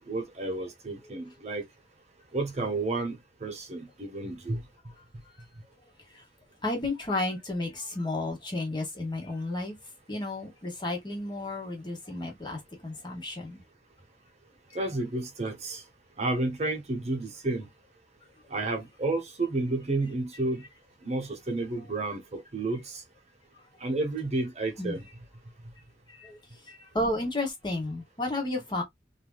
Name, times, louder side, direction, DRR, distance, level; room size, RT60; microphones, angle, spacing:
voice 1, 0.1-1.6 2.3-4.6 14.7-15.8 16.2-17.7 18.5-20.6 21.0-23.0 23.8-25.0, right 2 dB, 40° right, 0.8 m, -31 dB
voice 2, 6.6-9.8 10.1-13.6 24.8-25.0 26.1-26.4 26.7-28.8, left 2 dB, 25° left, 1.2 m, -32 dB
3.2 x 2.7 x 2.2 m
head